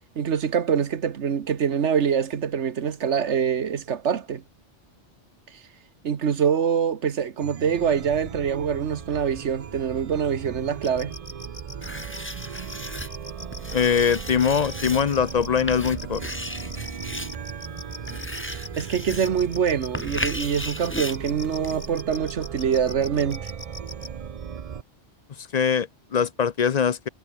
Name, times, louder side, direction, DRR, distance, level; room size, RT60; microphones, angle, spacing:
voice 1, 0.2-4.4 6.0-11.1 18.4-23.5, right 7 dB, 75° right, 1.5 m, -25 dB
Chime, 7.4-24.8, right 7 dB, 45° right, 0.5 m, -37 dB
sound 1, 10.8-24.1, left 3 dB, 30° left, 1.8 m, -41 dB
Writing, 11.8-22.0, left 1 dB, 10° left, 2.6 m, -36 dB
voice 2, 13.7-16.3 25.5-27.1, left 7 dB, 45° left, 0.6 m, -22 dB
omnidirectional pair, 1.2 m